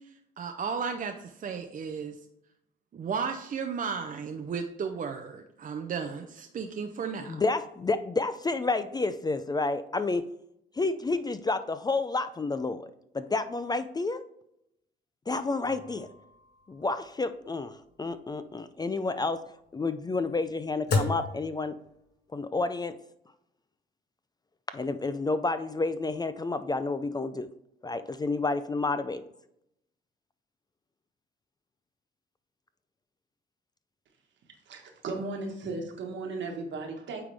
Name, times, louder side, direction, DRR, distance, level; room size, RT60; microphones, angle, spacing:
voice 1, 0.0-2.2 2.9-7.4, right 6 dB, 45° right, 5 dB, 0.6 m, -34 dB
voice 2, 7.3-10.3 10.7-14.2 15.3-16.1 16.7-19.4 19.7-21.8 22.3-23.0 24.7-27.5 27.8-29.2, left 3 dB, 20° left, 11 dB, 0.4 m, -30 dB
sound 1, 15.6-22.3, left 3 dB, 55° left, 1.6 m, -36 dB
voice 3, 34.7-37.2, right 3 dB, 70° right, 3 dB, 1.4 m, -36 dB
8.7 x 3.6 x 3.4 m, 0.77 s
cardioid pair, 90°, 20 cm